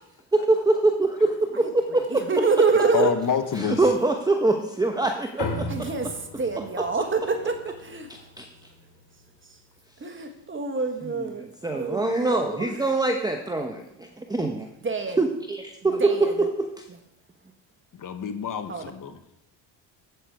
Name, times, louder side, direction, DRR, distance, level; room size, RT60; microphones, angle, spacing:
voice 1, 0.3-2.2 3.6-5.9 8.1-8.5 11.6-14.7 15.2-16.7, right 2 dB, 10° right, 4 dB, 0.9 m, -24 dB
voice 2, 1.5-3.2 5.7-8.5 9.5-9.6 10.0-11.5 11.7-12.7 14.3-14.4 14.8-15.2 15.9-16.5 18.7-18.9, right 4 dB, 25° right, 5 dB, 1.5 m, -27 dB
voice 3, 2.9-3.8 18.0-19.2, left 7 dB, 45° left, 9 dB, 1.1 m, -27 dB
sound 1, 5.4-10.1, left 2 dB, 60° left, 2.6 m, -38 dB
8.2 x 7.9 x 4.7 m, 0.81 s
supercardioid pair, 75°, 47 cm